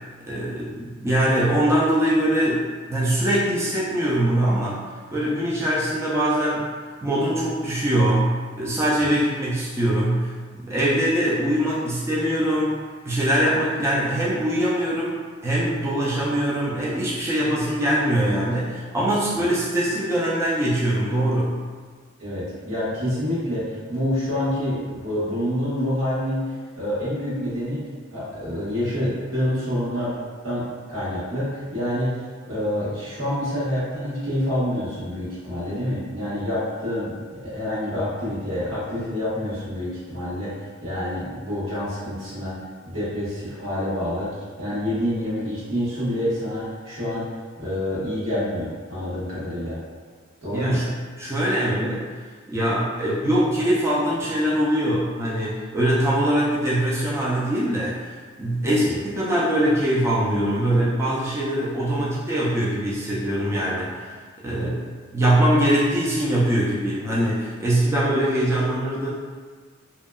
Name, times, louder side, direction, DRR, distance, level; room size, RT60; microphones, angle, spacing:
voice 1, 0.2-4.8 5.1-6.7 7.0-12.8 13.1-15.2 15.4-21.6 50.5-52.1 52.5-64.1 64.4-64.8 65.1-69.1, right 1 dB, 15° right, -7 dB, 0.3 m, -22 dB
voice 2, 22.2-27.8 28.1-30.2 30.4-32.1 32.5-42.6 42.8-47.3 47.6-49.8 50.4-50.8 51.7-51.8 58.6-58.9 64.5-64.7, left 1 dB, 85° right, -11 dB, 1.3 m, -27 dB
2.7 x 2.2 x 2.2 m, 1.5 s
head